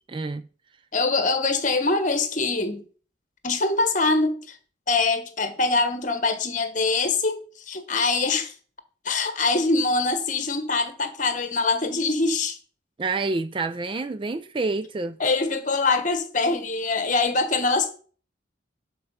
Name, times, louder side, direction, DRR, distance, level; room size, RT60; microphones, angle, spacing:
voice 1, 0.1-0.5 13.0-15.2, right 3 dB, 25° right, 0.3 m, -28 dB
voice 2, 0.9-2.8 3.4-4.6 4.9-7.4 7.7-8.5 9.0-12.6 15.2-17.9, left 3 dB, 40° left, 1.3 m, -23 dB
11.5 x 4.5 x 5.6 m
head